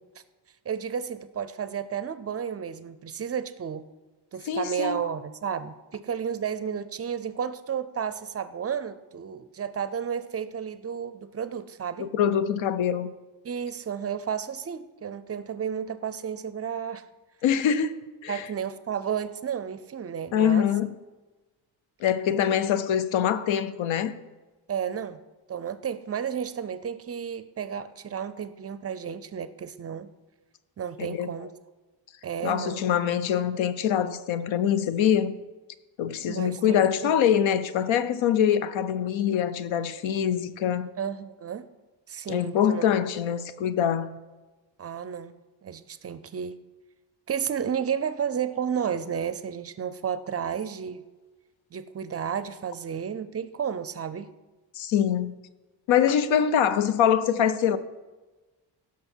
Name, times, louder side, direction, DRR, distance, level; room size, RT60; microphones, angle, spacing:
voice 1, 0.7-3.8 4.3-12.1 13.4-17.0 18.3-20.7 24.7-25.2 25.5-30.1 30.8-31.5 32.2-32.8 36.3-37.1 41.0-41.6 42.1-42.8 44.8-46.6 47.3-51.0 51.7-54.3, right 7 dB, 35° right, 0.4 m, -32 dB
voice 2, 4.5-5.0 12.0-13.1 17.4-18.0 18.2-18.3 20.3-20.9 22.0-24.2 31.0-31.3 32.4-35.3 36.0-40.9 42.3-44.1 54.7-55.3 55.9-57.8, left 9 dB, 80° left, 0.7 m, -24 dB
16.5 x 6.2 x 4.5 m
cardioid pair, 140°, 46 cm